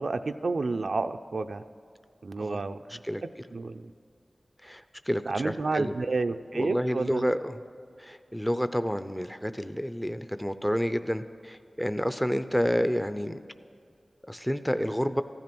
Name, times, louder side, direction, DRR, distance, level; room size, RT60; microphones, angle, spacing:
voice 1, 0.0-1.6 2.2-2.8 3.5-3.9 5.3-7.3, right 3 dB, 75° right, 7 dB, 0.4 m, -30 dB
voice 2, 2.9-3.2 4.6-6.0 6.5-7.6 8.0-13.4 14.3-15.2, equal, 5° left, 11 dB, 0.5 m, -29 dB
15.0 x 11.0 x 6.0 m, 2.4 s
wide cardioid pair, 75°, 0 cm